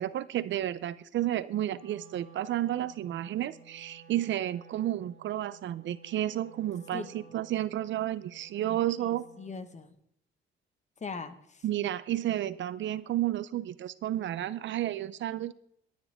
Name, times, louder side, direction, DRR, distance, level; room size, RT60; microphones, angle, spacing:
voice 1, 0.0-9.3 11.6-15.5, right 12 dB, 65° right, 17 dB, 0.6 m, -31 dB
Wind instrument woodwind instrument, 1.7-9.7, right 6 dB, 90° left, 5.1 m, -55 dB
voice 2, 8.6-9.9 11.0-11.6, left 4 dB, 35° left, 10 dB, 1.4 m, -41 dB
23.5 x 9.4 x 3.6 m, 0.73 s
cardioid pair, 110°, 21 cm